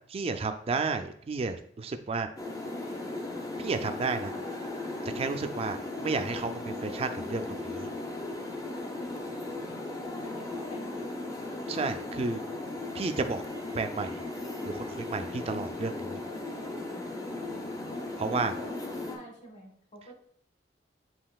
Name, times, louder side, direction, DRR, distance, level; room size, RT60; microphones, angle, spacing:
voice 1, 0.1-2.3 3.6-4.3 5.0-7.9 11.7-12.4 12.9-13.4 13.7-14.2 14.6-16.2 18.2-18.5, right 4 dB, 35° right, 7 dB, 0.3 m, -32 dB
sound 1, 2.4-19.2, left 2 dB, 20° left, 0.5 m, -37 dB
voice 2, 10.2-11.3 18.3-20.1, equal, 45° left, 0 dB, 1.3 m, -48 dB
7.5 x 2.8 x 2.3 m, 0.66 s
head